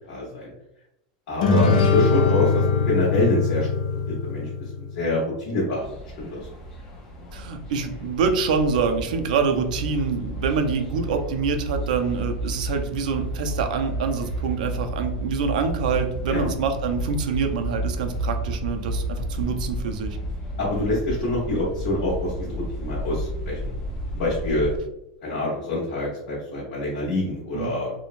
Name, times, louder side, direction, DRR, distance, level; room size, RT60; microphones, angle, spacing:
voice 1, 0.1-0.5 1.3-3.7 4.1-4.5 4.7-5.8 6.2-6.5 16.3-16.5 20.6-23.7 24.1-24.7 25.2-27.9, left 1 dB, 45° left, -7 dB, 0.9 m, -26 dB
sound 1, 1.4-5.0, left 4 dB, 70° left, 0.5 m, -22 dB
sound 2, 5.8-24.8, right 1 dB, 15° left, 0.4 m, -31 dB
voice 2, 7.3-20.2 27.5-27.7, right 5 dB, 70° right, 6 dB, 0.4 m, -26 dB
3.0 x 2.0 x 2.4 m, 0.85 s
supercardioid pair, 175°, 4 cm